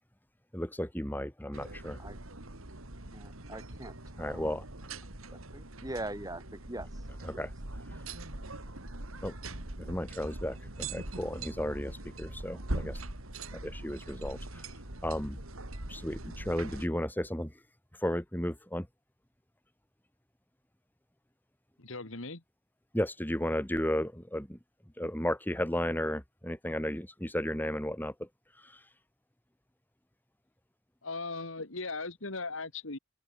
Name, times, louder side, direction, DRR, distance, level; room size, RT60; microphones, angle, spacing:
voice 1, 0.5-2.0 4.2-4.6 7.2-7.5 7.9-8.0 9.2-9.4 9.8-13.0 13.5-15.4 15.9-17.6 17.9-18.9 22.9-24.6 25.0-28.3 28.5-28.9, left 1 dB, 10° left, 3.3 m, -34 dB
sound 1, 1.5-16.9, right 2 dB, 90° right, 3.6 m, -42 dB
voice 2, 3.1-4.5 5.5-6.9 7.3-7.4, right 1 dB, 20° right, 6.3 m, -42 dB
voice 3, 21.8-22.4 31.0-33.0, left 3 dB, 65° left, 2.6 m, -38 dB
open air
head